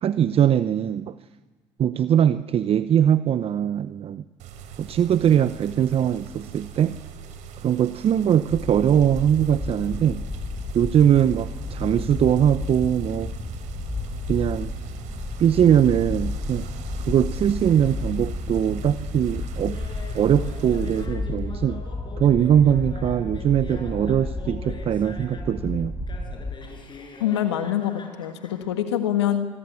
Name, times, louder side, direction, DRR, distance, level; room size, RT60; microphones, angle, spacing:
voice 1, 0.0-1.1 1.8-4.2 4.8-7.0 7.6-10.2 10.7-13.3 14.3-14.7 15.4-16.7 17.0-19.8 20.1-21.8 22.2-25.9, right 9 dB, 45° right, 14 dB, 0.8 m, -21 dB
sound 1, 4.4-21.1, right 7 dB, 65° right, 3.4 m, -42 dB
sound 2, 8.5-26.5, left 2 dB, 10° left, 7.8 m, -32 dB
Laughter, 19.7-25.6 26.1-28.7, left 4 dB, 35° left, 6.5 m, -43 dB
voice 2, 27.2-29.5, left 11 dB, 85° left, 7 dB, 1.8 m, -25 dB
27.0 x 21.0 x 8.3 m, 1.3 s
hypercardioid pair, 65°, 14 cm